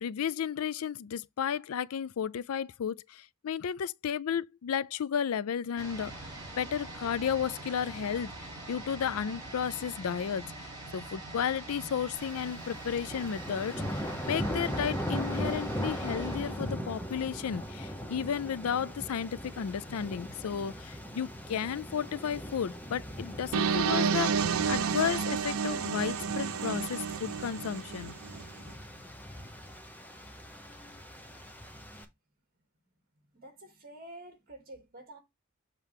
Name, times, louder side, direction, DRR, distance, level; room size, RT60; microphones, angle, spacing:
voice 1, 0.0-6.1 6.6-8.3 8.7-10.4 10.9-28.1, left 8 dB, 80° left, 0.4 m, -33 dB
sound 1, 5.8-17.5 17.8-17.9, right 2 dB, 20° right, 3.6 m, -44 dB
sound 2, 12.2-32.0, equal, 10° left, 0.9 m, -39 dB
sound 3, 23.5-28.4, right 6 dB, 70° right, 0.5 m, -30 dB
voice 2, 33.3-35.2, right 1 dB, 45° right, 2.5 m, -49 dB
7.4 x 4.5 x 3.5 m
head